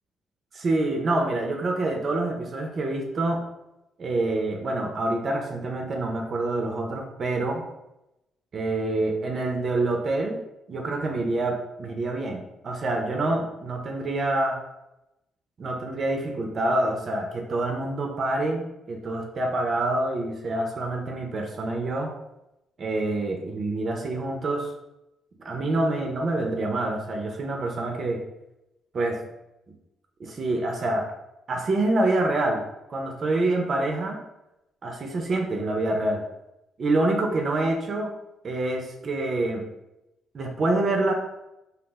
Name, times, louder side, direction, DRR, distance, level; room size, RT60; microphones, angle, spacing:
voice 1, 0.5-3.4 4.0-7.6 8.5-10.4 10.7-14.6 15.6-22.1 22.8-24.7 25.4-28.2 28.9-29.2 30.2-31.1 31.5-32.6 32.9-34.2 34.8-36.2 36.8-38.1 38.4-39.6 40.3-41.1, right 2 dB, 50° right, 2 dB, 0.5 m, -26 dB
2.3 x 2.0 x 3.4 m, 0.90 s
supercardioid pair, 60°, 0 cm